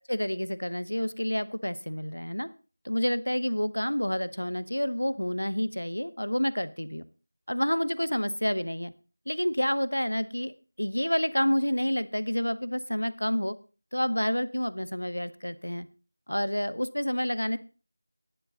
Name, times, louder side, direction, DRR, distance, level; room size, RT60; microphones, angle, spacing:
voice 1, 0.1-2.5 2.8-7.0 7.5-8.9 9.3-10.5 10.8-13.5 13.9-15.9 16.3-17.6, equal, 85° left, 15 dB, 0.9 m, -29 dB
10.5 x 10.5 x 4.0 m, 0.35 s
figure-of-eight pair, 170°, 0 cm